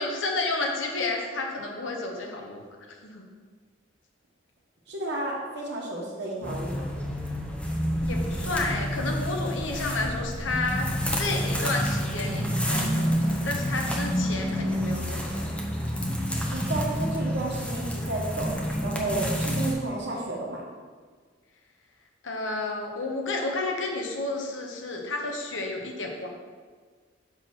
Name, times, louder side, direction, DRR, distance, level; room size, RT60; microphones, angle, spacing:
voice 1, 0.0-2.6 2.9-3.3 8.0-10.9 11.1-15.5 22.2-26.3, left 2 dB, 75° left, 1 dB, 0.9 m, -31 dB
voice 2, 4.9-6.8 16.5-18.5 18.8-20.6, right 2 dB, 60° right, -3 dB, 1.1 m, -32 dB
sound 1, 6.4-19.7, equal, 5° left, 0.8 m, -28 dB
6.6 x 3.0 x 5.7 m, 1.6 s
head